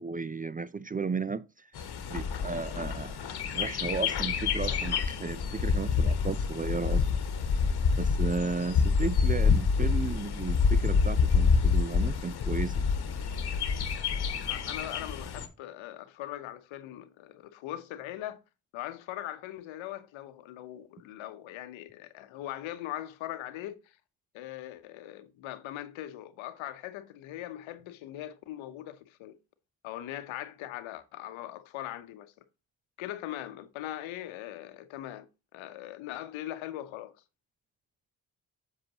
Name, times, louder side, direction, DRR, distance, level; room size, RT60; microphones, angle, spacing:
voice 1, 0.0-1.7 2.1-3.2 3.5-7.0 8.0-12.8, right 4 dB, 20° right, 0.4 m, -34 dB
Bird, 1.7-15.5, left 5 dB, 55° left, 1.3 m, -27 dB
voice 2, 14.5-18.4 18.7-24.0 24.3-29.4 29.8-32.3 33.0-35.3 35.5-37.1, left 13 dB, 80° left, 0.9 m, -40 dB
7.7 x 6.5 x 2.9 m
supercardioid pair, 50°, 46 cm